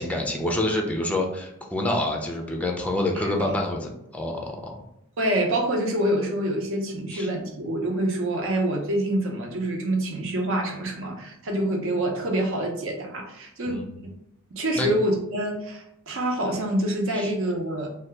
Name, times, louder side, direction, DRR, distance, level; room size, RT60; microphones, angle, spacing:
voice 1, 0.0-4.7 7.1-7.3 13.7-13.9 14.8-14.9 17.1-17.3, left 1 dB, 5° left, 1 dB, 0.4 m, -27 dB
voice 2, 3.1-3.6 5.2-13.9 14.5-17.9, right 1 dB, 65° right, 1 dB, 0.7 m, -26 dB
2.7 x 2.2 x 3.3 m, 0.81 s
head